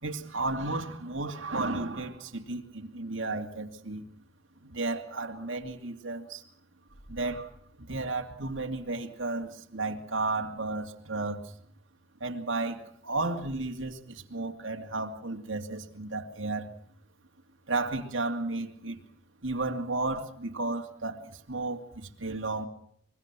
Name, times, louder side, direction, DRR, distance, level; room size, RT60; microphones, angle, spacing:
voice 1, 0.0-4.0 4.6-6.4 7.1-7.5 7.8-11.5 12.2-16.7 17.7-19.0 19.4-22.7, right 2 dB, 70° right, 2.5 m, -33 dB
24.0 x 22.5 x 6.1 m
head